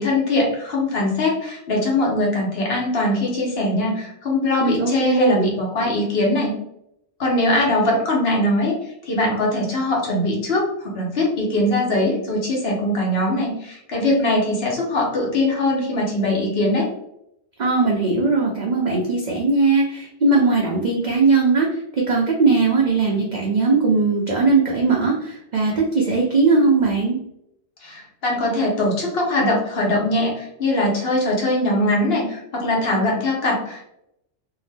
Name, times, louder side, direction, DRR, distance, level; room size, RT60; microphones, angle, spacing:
voice 1, 0.0-6.5 7.2-8.8 9.0-16.9 27.8-33.9, left 1 dB, 60° left, -2 dB, 1.0 m, -21 dB
voice 2, 4.6-5.5 17.6-27.2, right 3 dB, 55° right, -2 dB, 0.5 m, -19 dB
2.7 x 2.1 x 3.2 m, 0.77 s
omnidirectional pair, 1.2 m